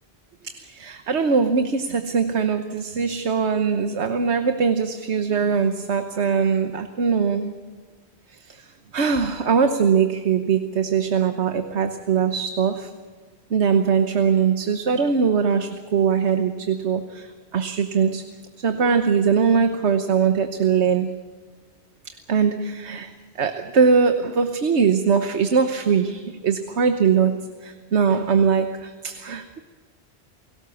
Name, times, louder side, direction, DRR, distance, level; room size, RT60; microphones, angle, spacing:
voice 1, 0.4-7.5 8.3-12.9 13.5-18.3 18.6-21.2 22.3-23.1 23.4-29.6, right 6 dB, 85° right, 7 dB, 1.4 m, -21 dB
29.0 x 18.5 x 7.1 m, 1.5 s
omnidirectional pair, 1.1 m